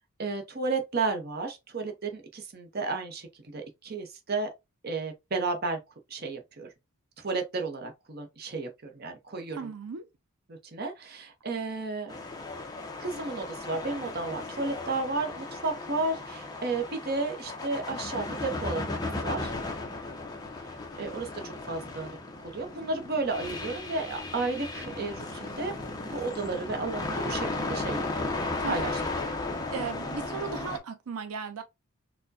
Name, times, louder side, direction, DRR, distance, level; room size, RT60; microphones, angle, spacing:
voice 1, 0.2-4.5 4.8-5.8 6.1-6.7 7.2-9.7 10.5-12.1 13.0-19.5 21.0-22.2 22.4-25.7 26.0-28.3 28.6-29.4, right 3 dB, 45° right, 0.7 m, -33 dB
voice 2, 9.6-10.0 28.6-28.8 29.7-31.6, right 5 dB, 85° right, 0.5 m, -36 dB
sound 1, 12.1-30.8, left 2 dB, 15° left, 0.6 m, -35 dB
4.4 x 2.2 x 2.6 m
head